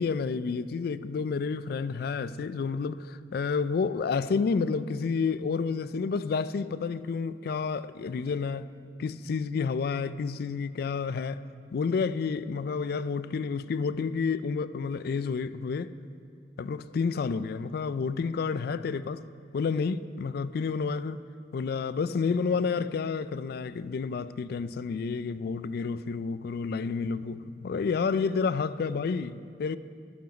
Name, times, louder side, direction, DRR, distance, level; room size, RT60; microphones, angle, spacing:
voice 1, 0.0-8.7 9.0-11.4 11.7-15.9 16.6-19.2 19.5-21.2 21.5-29.8, left 5 dB, 60° left, 0.3 m, -30 dB
12.5 x 7.0 x 5.1 m
head